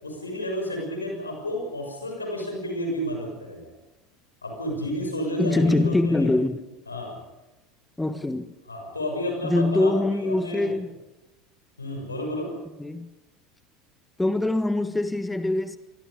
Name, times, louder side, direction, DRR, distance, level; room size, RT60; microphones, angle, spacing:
voice 1, 0.0-3.7 4.4-6.3 6.9-7.2 8.7-10.8 11.8-12.5, equal, 90° left, 6.5 m, -31 dB
voice 2, 5.4-6.6 8.0-8.5 9.4-10.9 12.8-13.1 14.2-15.8, left 2 dB, 10° left, 1.4 m, -23 dB
27.5 x 24.0 x 5.2 m
figure-of-eight pair, 75°, 0 cm